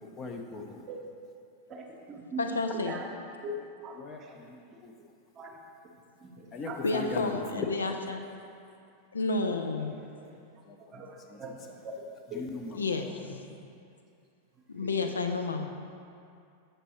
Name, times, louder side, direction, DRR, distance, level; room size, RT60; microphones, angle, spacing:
voice 1, 0.0-0.8 4.0-4.9 6.5-8.0 9.4-9.6 10.0-10.1 10.6-11.4 12.3-12.8 13.2-13.4 15.0-15.1, left 3 dB, 30° left, 4 dB, 0.6 m, -40 dB
voice 2, 0.5-1.0 1.7-3.1 3.4-4.4 5.4-5.6 5.8-5.9 6.2-7.3 9.8-10.3 10.9-12.5 12.9-13.4 14.7-15.1, right 1 dB, 30° right, 2 dB, 0.7 m, -42 dB
voice 3, 2.4-3.0 6.8-8.2 9.1-9.9 12.8-13.1 14.7-15.7, left 3 dB, 75° left, 5 dB, 0.4 m, -30 dB
6.5 x 6.1 x 2.9 m, 2.4 s
figure-of-eight pair, 90°, 0 cm